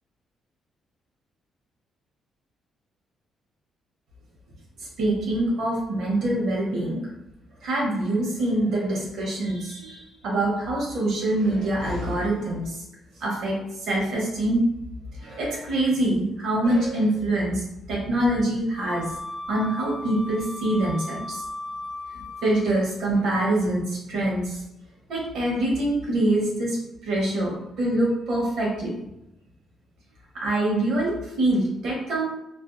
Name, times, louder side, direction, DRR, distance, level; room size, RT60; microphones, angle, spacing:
voice 1, 5.0-7.1 7.6-12.8 13.2-14.6 15.2-19.1 19.5-21.4 22.1-24.6 25.1-26.8 27.0-28.9 30.3-32.3, right 1 dB, 75° right, -3 dB, 0.9 m, -25 dB
Wind instrument woodwind instrument, 18.7-22.8, left 2 dB, 60° left, 0.6 m, -36 dB
2.5 x 2.5 x 2.3 m, 0.86 s
cardioid pair, 90°, 0 cm